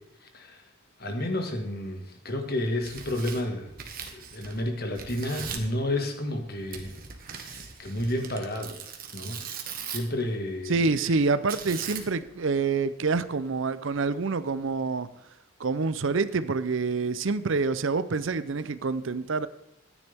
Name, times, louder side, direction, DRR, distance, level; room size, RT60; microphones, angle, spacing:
voice 1, 1.0-3.7 4.1-6.9 7.4-8.8 9.1-9.4 9.9-10.7, left 1 dB, 45° left, 1.8 m, -31 dB
Tearing, 2.7-4.7 5.0-5.7 6.7-10.2 11.5-12.3, right 7 dB, 40° right, 1.4 m, -39 dB
voice 2, 10.7-15.1 15.6-19.5, right 4 dB, 65° right, 0.6 m, -27 dB
13.5 x 9.9 x 3.5 m
head